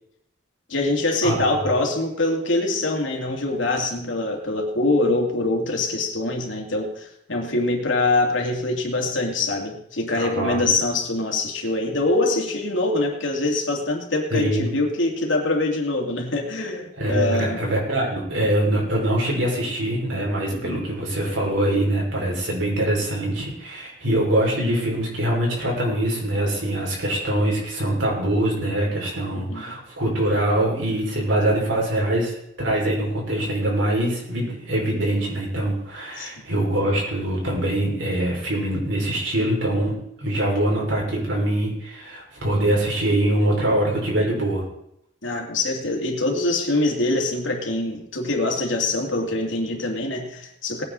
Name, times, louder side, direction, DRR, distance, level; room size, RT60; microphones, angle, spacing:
voice 1, 0.7-17.6 20.5-20.9 29.3-29.8 36.2-36.3 45.2-50.8, left 2 dB, 80° left, 1 dB, 2.7 m, -24 dB
voice 2, 1.2-1.5 10.1-10.7 14.3-14.7 17.0-44.6, right 1 dB, 85° right, -2 dB, 5.5 m, -23 dB
19.0 x 9.5 x 4.1 m, 0.75 s
head